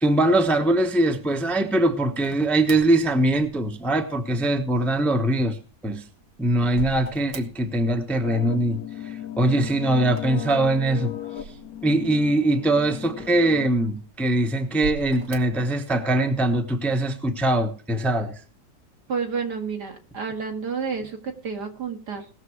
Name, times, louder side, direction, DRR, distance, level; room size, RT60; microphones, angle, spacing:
voice 1, 0.0-5.6 5.8-6.0 6.4-11.1 11.8-18.3, right 1 dB, ahead, 5 dB, 0.9 m, -22 dB
sound 1, 2.2-3.9 5.7-8.9 10.0-12.2 12.8-12.9 13.7-14.2 14.7-15.7, right 4 dB, 85° right, 2.1 m, -40 dB
sound 2, 8.2-13.7, left 11 dB, 60° left, 1.2 m, -36 dB
voice 2, 19.1-22.3, right 5 dB, 65° right, 4 dB, 2.4 m, -30 dB
19.0 x 6.7 x 4.8 m, 0.37 s
omnidirectional pair, 1.9 m